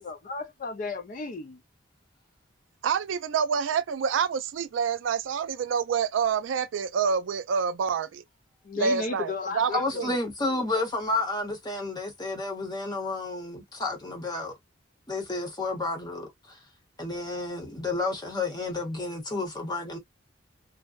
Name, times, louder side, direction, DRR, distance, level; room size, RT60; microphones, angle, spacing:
voice 1, 0.0-1.6 8.6-10.2 10.5-10.6, left 3 dB, 45° left, 0.4 m, -34 dB
voice 2, 2.8-8.2 8.8-9.7 10.0-10.1, right 6 dB, 75° right, 0.3 m, -27 dB
voice 3, 9.6-14.6 15.1-16.6 17.0-20.0, left 2 dB, 20° left, 0.8 m, -31 dB
2.6 x 2.1 x 2.3 m
head